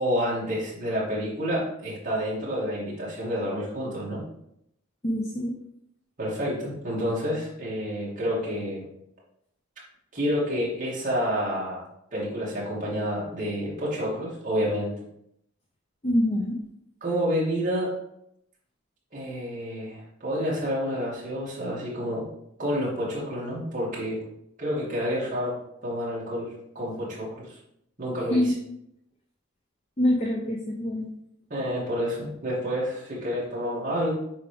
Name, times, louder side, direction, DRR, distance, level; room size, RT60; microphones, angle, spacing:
voice 1, 0.0-4.2 6.2-8.9 10.1-14.9 17.0-17.9 19.1-22.3 22.6-24.2 24.6-25.6 25.8-27.6 28.0-28.5 31.5-34.1, equal, 35° right, -6 dB, 2.5 m, -29 dB
voice 2, 5.0-5.5 16.0-16.6 28.3-28.5 30.0-31.1, left 1 dB, 30° left, -1 dB, 0.6 m, -25 dB
7.0 x 4.4 x 3.5 m, 0.76 s
head